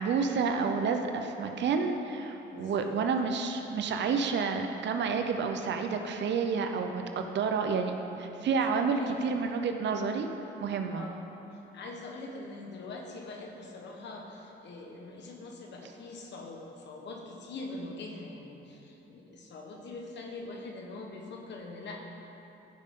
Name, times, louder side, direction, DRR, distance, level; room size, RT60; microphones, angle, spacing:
voice 1, 0.0-10.3 10.6-11.0, right 5 dB, 65° right, 5 dB, 0.7 m, -30 dB
voice 2, 2.5-2.9 8.7-9.2 10.9-11.3 11.7-22.0, left 2 dB, 65° left, 1 dB, 1.2 m, -43 dB
15.0 x 5.3 x 3.7 m, 3.0 s
cardioid pair, 90°, 20 cm